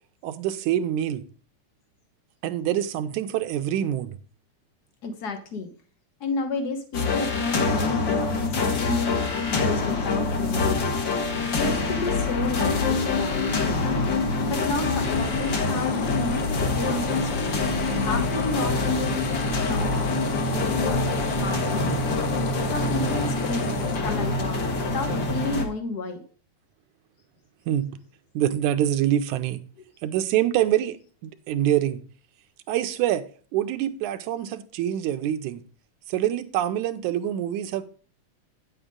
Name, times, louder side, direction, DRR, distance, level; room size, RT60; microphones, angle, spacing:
voice 1, 0.2-1.2 2.4-4.2 27.7-27.9 28.4-29.6 30.0-31.0 31.2-32.0 32.7-33.2 33.5-35.6 36.1-37.8, right 11 dB, 80° right, 2.1 m, -25 dB
voice 2, 5.0-5.7 6.2-8.3 8.6-11.0 11.5-14.0 14.4-17.6 18.0-20.0 20.4-21.0 21.3-22.0 22.7-26.2, left 3 dB, 75° left, 0.9 m, -32 dB
Desecration Of Hope (Dramatic Strings), 6.9-25.6, left 3 dB, 50° left, 1.5 m, -25 dB
sound 1, 15.0-24.0, left 9 dB, 90° left, 2.3 m, -38 dB
9.4 x 8.1 x 3.7 m
omnidirectional pair, 3.5 m